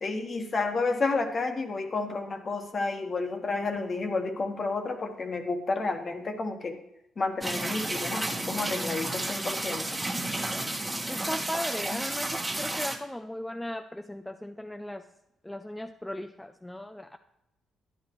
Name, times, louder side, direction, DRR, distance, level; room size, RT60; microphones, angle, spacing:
voice 1, 0.0-6.8 7.2-9.8 11.9-12.0, left 3 dB, 40° left, 5 dB, 1.3 m, -31 dB
sound 1, 7.4-13.0, right 1 dB, 10° right, 1.4 m, -32 dB
voice 2, 11.1-15.0 15.4-17.2, left 1 dB, 5° left, 7 dB, 0.4 m, -37 dB
11.0 x 10.0 x 3.1 m, 0.86 s
cardioid pair, 90°, 0 cm